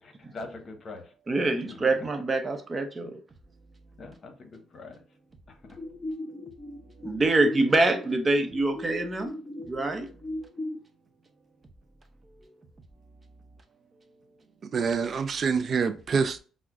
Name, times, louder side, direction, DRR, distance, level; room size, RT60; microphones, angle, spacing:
voice 1, 0.0-1.1 1.5-1.8 4.0-5.0 5.5-5.8, left 3 dB, 50° left, 0.9 m, -43 dB
voice 2, 1.3-3.2 7.0-9.3 9.7-10.1, right 2 dB, 30° right, 0.7 m, -25 dB
sound 1, 5.8-10.8, left 1 dB, 5° left, 1.2 m, -38 dB
voice 3, 14.6-16.4, right 5 dB, 50° right, 0.3 m, -26 dB
5.7 x 2.1 x 2.4 m
cardioid pair, 90°, 0 cm